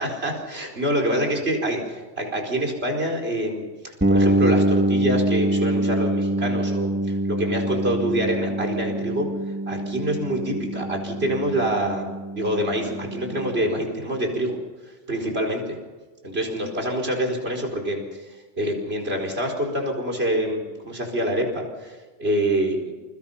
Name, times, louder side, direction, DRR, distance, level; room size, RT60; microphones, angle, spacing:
voice 1, 0.0-1.8 2.2-9.3 9.7-14.6 15.1-15.8 16.2-18.2 18.6-22.9, right 1 dB, 50° right, 2 dB, 4.9 m, -26 dB
sound 1, 4.0-13.7, right 1 dB, 10° right, 2.0 m, -25 dB
28.0 x 22.5 x 5.7 m, 1.3 s
omnidirectional pair, 1.3 m